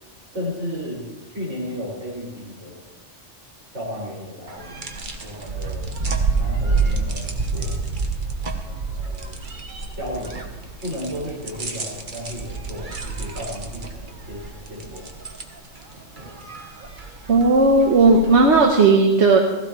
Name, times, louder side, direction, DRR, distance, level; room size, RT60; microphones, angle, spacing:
voice 1, 0.3-2.8 3.7-4.8 5.2-6.0 6.3-7.8 8.9-9.4 10.0-10.5 10.8-14.4 14.7-15.1 16.2-16.3, left 1 dB, 85° right, -6 dB, 6.2 m, -33 dB
sound 1, 4.5-18.6, right 4 dB, 45° right, 1.2 m, -29 dB
voice 2, 17.3-19.4, right 3 dB, 70° right, 1 dB, 1.3 m, -15 dB
16.0 x 16.0 x 3.2 m, 1.1 s
omnidirectional pair, 1.2 m